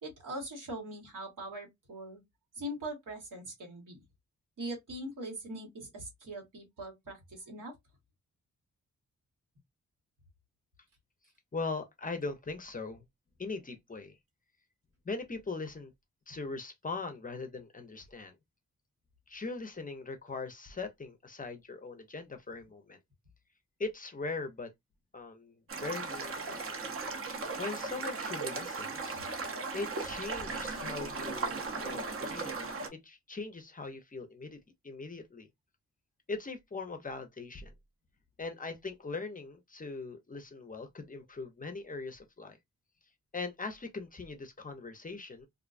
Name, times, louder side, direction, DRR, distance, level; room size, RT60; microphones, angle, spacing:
voice 1, 0.0-2.2 2.5-4.0 4.6-7.7, right 1 dB, 90° right, 1.3 m, -41 dB
voice 2, 11.5-13.0 13.4-14.2 15.0-15.9 16.3-18.4 19.3-23.0 23.8-24.7 25.1-26.6 27.6-29.2 29.7-32.5 32.9-34.6 34.8-35.5 36.3-37.7 38.4-42.6 43.3-45.5, left 3 dB, 25° left, 0.5 m, -40 dB
sound 1, 25.7-32.9, right 4 dB, 45° right, 0.7 m, -37 dB
2.4 x 2.2 x 2.4 m
wide cardioid pair, 90°, 31 cm